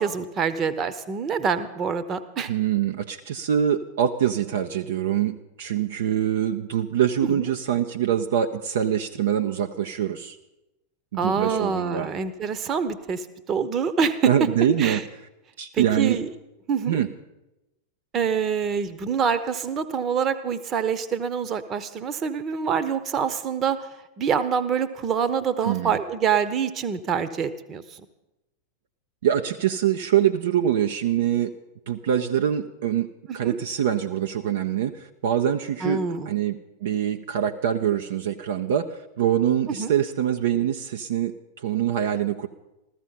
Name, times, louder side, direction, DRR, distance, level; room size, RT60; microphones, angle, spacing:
voice 1, 0.0-2.5 7.2-7.5 11.2-14.3 14.8-15.0 15.7-16.3 16.7-17.0 18.1-23.8 24.2-27.8 33.3-33.6 35.8-36.3 39.7-39.9, right 6 dB, 30° right, 12 dB, 1.0 m, -26 dB
voice 2, 2.5-10.4 11.1-12.1 14.2-15.0 15.6-16.2 16.9-17.1 25.6-26.0 29.2-31.5 31.9-33.1 33.3-38.9 39.2-42.5, right 10 dB, 60° right, 6 dB, 0.6 m, -24 dB
14.5 x 14.5 x 5.7 m, 0.95 s
figure-of-eight pair, 90°, 0 cm